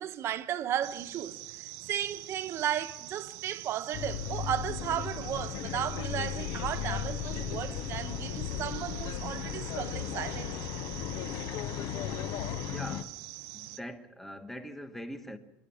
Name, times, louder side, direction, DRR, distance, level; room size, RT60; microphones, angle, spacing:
voice 1, 0.0-10.7, right 10 dB, 35° right, 1.1 m, -35 dB
sound 1, 0.8-13.8, right 19 dB, 60° right, 0.7 m, -45 dB
sound 2, 3.9-13.0, left 10 dB, 45° left, 0.8 m, -36 dB
voice 2, 12.7-13.2 13.5-15.4, equal, 5° left, 1.2 m, -42 dB
27.0 x 11.5 x 10.0 m
cardioid pair, 180°, 8 cm